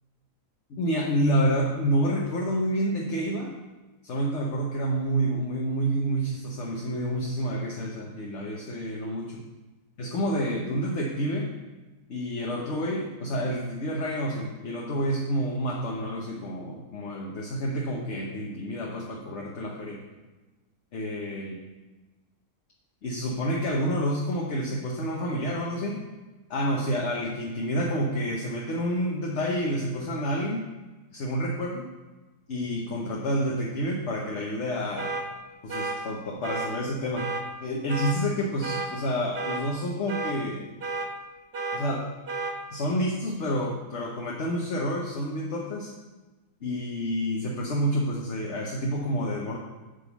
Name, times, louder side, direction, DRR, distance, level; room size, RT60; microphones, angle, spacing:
voice 1, 0.7-3.5 4.0-9.4 10.0-11.5 12.1-20.0 20.9-21.6 23.0-26.0 26.5-30.7 31.1-31.9 32.5-35.1 35.6-37.3 37.6-40.7 41.7-42.1 42.7-45.9 46.6-49.6, equal, 50° left, -1 dB, 1.1 m, -29 dB
sound 1, 35.0-35.2 35.7-36.0 36.4-36.7 37.2-37.4 37.9-38.2 38.6-38.9 39.3-39.6 40.1-40.3 40.8-41.1 41.5-41.8 42.3-42.5, right 3 dB, 50° right, 0.9 m, -31 dB
8.1 x 3.9 x 6.9 m, 1.2 s
omnidirectional pair, 1.7 m